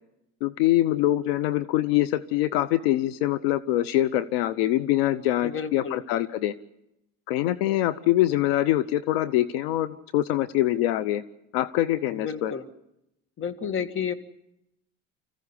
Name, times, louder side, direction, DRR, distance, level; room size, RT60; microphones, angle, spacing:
voice 1, 0.4-6.5 7.3-11.2 11.5-12.5, left 14 dB, 85° left, 15 dB, 0.9 m, -24 dB
voice 2, 5.4-6.0 12.1-12.6 13.4-14.1, left 7 dB, 45° left, 10 dB, 2.1 m, -31 dB
25.5 x 15.5 x 10.0 m, 0.87 s
supercardioid pair, 100°, 29 cm